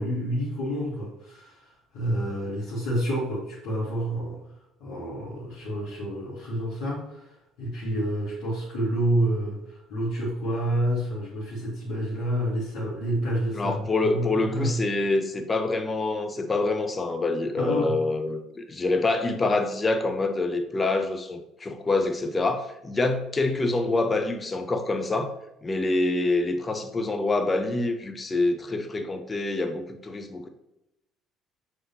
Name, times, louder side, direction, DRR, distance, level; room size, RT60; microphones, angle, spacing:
voice 1, 0.0-4.4 4.8-14.7 17.6-18.0, equal, 65° left, -9 dB, 1.4 m, -29 dB
voice 2, 13.5-25.3 25.6-30.5, left 2 dB, 25° left, 7 dB, 0.6 m, -26 dB
6.4 x 2.9 x 2.8 m, 0.88 s
figure-of-eight pair, 55°, 0 cm